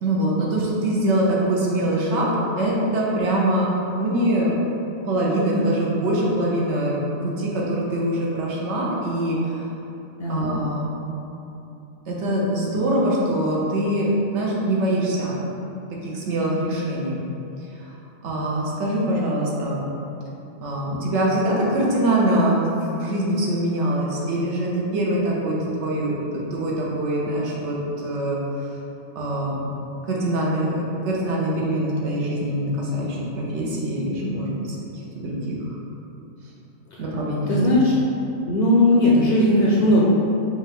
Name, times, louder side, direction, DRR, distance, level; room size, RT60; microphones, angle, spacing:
voice 1, 0.0-2.3 2.6-3.7 4.0-4.5 5.1-9.6 10.3-10.9 12.1-15.3 16.0-17.2 17.8-17.9 18.2-19.8 20.6-28.4 29.1-29.6 30.1-34.8 35.1-35.6 37.0-37.7, right 1 dB, 70° right, -4 dB, 1.1 m, -23 dB
voice 2, 10.2-10.5 36.9-37.0 37.5-37.9 38.5-40.0, left 1 dB, 60° left, -5 dB, 0.7 m, -18 dB
5.0 x 2.4 x 3.5 m, 2.9 s
omnidirectional pair, 1.3 m